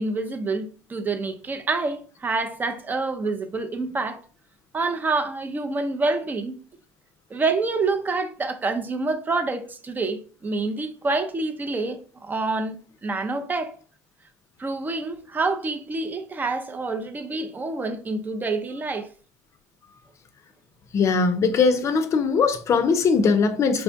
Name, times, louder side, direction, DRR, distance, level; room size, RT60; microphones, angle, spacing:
voice 1, 0.0-4.2 4.7-6.6 7.3-13.7 14.6-19.1, right 3 dB, 25° right, 0.6 m, -27 dB
voice 2, 20.9-23.8, left 5 dB, 40° left, 0.5 m, -20 dB
4.5 x 2.2 x 2.6 m
hypercardioid pair, 75°, 8 cm